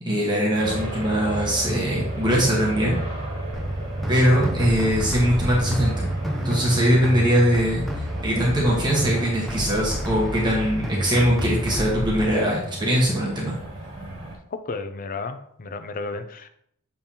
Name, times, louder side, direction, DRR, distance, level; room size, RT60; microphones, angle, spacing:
voice 1, 0.0-3.0 4.1-6.1 6.4-7.9 8.2-13.5, equal, 20° right, -4 dB, 1.4 m, -21 dB
sound 1, 0.6-14.4, right 1 dB, 55° right, 2.1 m, -32 dB
sound 2, 3.5-12.3, equal, ahead, 0.7 m, -30 dB
voice 2, 14.5-16.5, left 3 dB, 40° left, 10 dB, 0.5 m, -33 dB
7.0 x 5.3 x 2.9 m, 0.70 s
head